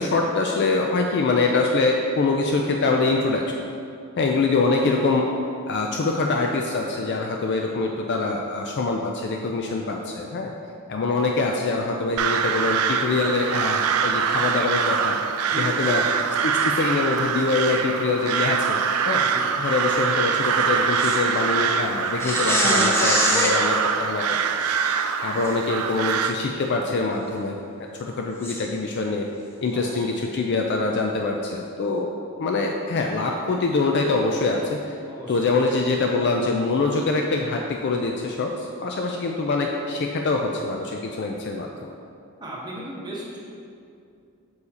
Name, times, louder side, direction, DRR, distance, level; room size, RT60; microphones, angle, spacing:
voice 1, 0.0-3.6 4.2-5.2 5.7-10.5 10.9-15.2 15.6-16.0 16.4-18.8 19.1-19.2 19.6-24.2 24.5-24.7 25.2-27.6 28.0-29.3 29.6-32.1 32.4-35.0 35.3-41.9, left 3 dB, 50° left, 1 dB, 0.4 m, -24 dB
voice 2, 4.2-4.9 10.9-11.4 15.5-16.7 19.2-19.5 29.7-30.2 35.1-35.5 42.4-43.4, right 1 dB, 20° right, -5 dB, 1.1 m, -38 dB
Crow, 12.2-26.3, right 6 dB, 70° right, 0.3 m, -24 dB
sound 1, 21.0-21.2 22.2-23.6 25.4-25.5 26.1-26.2 28.4-28.6, left 1 dB, 10° left, 0.6 m, -23 dB
6.6 x 4.7 x 4.1 m, 2.5 s
head